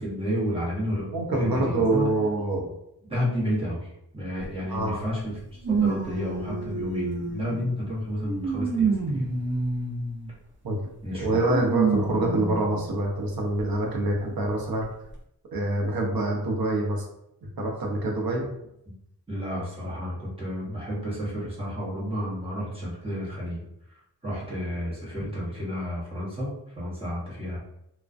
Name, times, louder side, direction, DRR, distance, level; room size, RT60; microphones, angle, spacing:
voice 1, 0.0-2.1 3.1-3.9 4.1-9.3 11.0-11.4 19.3-23.6 24.2-27.6, equal, 15° right, -7 dB, 1.0 m, -31 dB
voice 2, 1.1-2.7 4.7-5.0 5.8-6.0 10.6-10.8 11.2-14.8 15.5-17.1 17.6-18.5, right 2 dB, 65° right, 0 dB, 0.7 m, -26 dB
sound 1, 4.4-4.5 5.6-7.7 8.2-10.3 11.5-12.9 13.6-13.7 14.8-14.9, right 4 dB, 30° right, 0.5 m, -28 dB
2.4 x 2.1 x 2.4 m, 0.80 s
wide cardioid pair, 90°, 38 cm